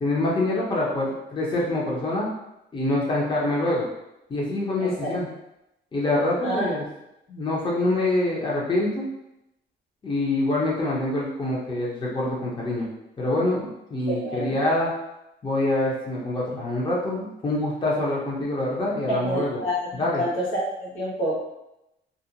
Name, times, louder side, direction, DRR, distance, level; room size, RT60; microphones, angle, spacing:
voice 1, 0.0-2.3 2.7-3.9 4.3-5.3 5.9-6.9 7.3-9.0 10.0-12.9 13.2-14.9 15.4-19.6 20.0-20.2, left 2 dB, 25° left, -5 dB, 0.7 m, -25 dB
voice 2, 4.8-5.1 6.4-6.7 14.1-14.6 19.1-21.4, equal, 80° left, -6 dB, 1.0 m, -28 dB
2.5 x 2.1 x 2.7 m, 0.88 s
cardioid pair, 90°, 20 cm